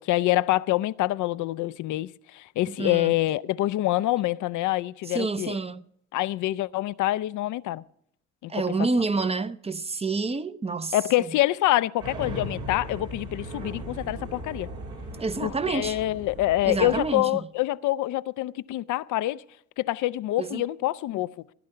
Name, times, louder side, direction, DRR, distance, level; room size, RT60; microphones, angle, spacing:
voice 1, 0.0-5.6 6.1-7.8 8.4-8.5 8.8-8.9 10.9-14.7 15.4-19.4 19.8-21.3, left 16 dB, 80° left, 0.5 m, -26 dB
voice 2, 2.7-3.1 5.1-5.9 8.5-11.0 15.2-16.0 16.6-17.4 20.4-20.6, right 3 dB, 20° right, 0.5 m, -28 dB
sound 1, 12.0-17.1, equal, 85° right, 3.2 m, -37 dB
15.5 x 9.7 x 5.7 m
cardioid pair, 90°, 30 cm